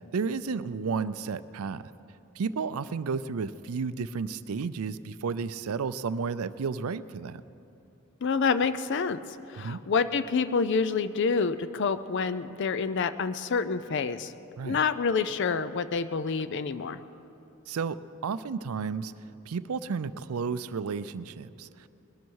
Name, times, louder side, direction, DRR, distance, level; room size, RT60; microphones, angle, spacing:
voice 1, 0.1-1.8 2.4-7.4 9.6-9.8 14.6-14.8 17.7-19.1 19.5-21.9, right 5 dB, 75° right, 15 dB, 0.4 m, -32 dB
voice 2, 8.2-9.2 9.5-14.3 14.6-17.0, left 5 dB, 55° left, 13 dB, 0.4 m, -27 dB
21.0 x 11.5 x 4.7 m, 2.7 s
head